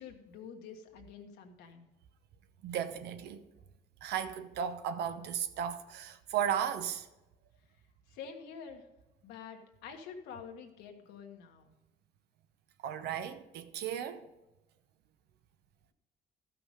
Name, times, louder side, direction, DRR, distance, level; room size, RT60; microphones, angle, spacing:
voice 1, 0.0-1.9 8.1-8.8 9.2-11.7, left 6 dB, 90° left, 1.4 m, -47 dB
voice 2, 2.6-3.4 4.0-7.1 12.8-14.2, right 9 dB, 75° right, 0.9 m, -35 dB
13.0 x 5.9 x 5.0 m
cardioid pair, 110°, 17 cm